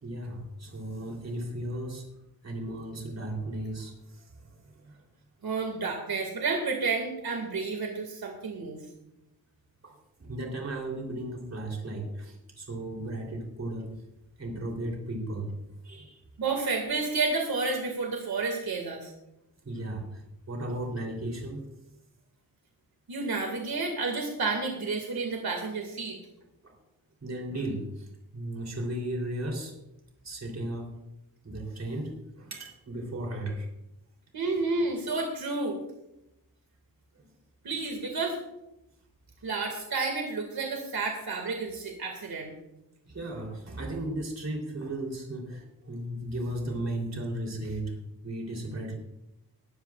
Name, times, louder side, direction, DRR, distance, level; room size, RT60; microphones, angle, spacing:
voice 1, 0.0-2.0 2.4-5.0 9.8-13.9 14.4-15.6 15.8-16.2 19.6-20.2 20.5-21.7 26.6-26.8 27.2-29.7 30.2-30.9 31.4-33.7 37.1-37.2 43.1-49.0, right 1 dB, 40° right, 1 dB, 3.6 m, -35 dB
voice 2, 5.4-8.8 16.4-19.1 23.1-26.2 34.3-35.8 37.6-38.4 39.4-42.5, right 3 dB, 70° right, 1 dB, 2.2 m, -30 dB
21.0 x 12.5 x 2.5 m, 0.88 s
wide cardioid pair, 170°, 38 cm